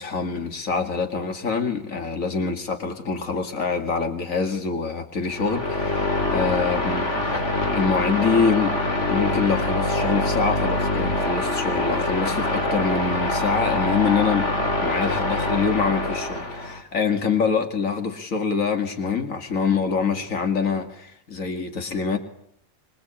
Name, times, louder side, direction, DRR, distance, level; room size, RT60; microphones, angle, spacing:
voice 1, 0.0-7.4 7.7-8.8 9.1-14.5 14.8-22.2, left 5 dB, 75° left, 6 dB, 2.6 m, -25 dB
sound 1, 5.3-16.8, left 2 dB, 60° left, 3.3 m, -24 dB
25.5 x 23.0 x 8.6 m, 0.72 s
omnidirectional pair, 1.4 m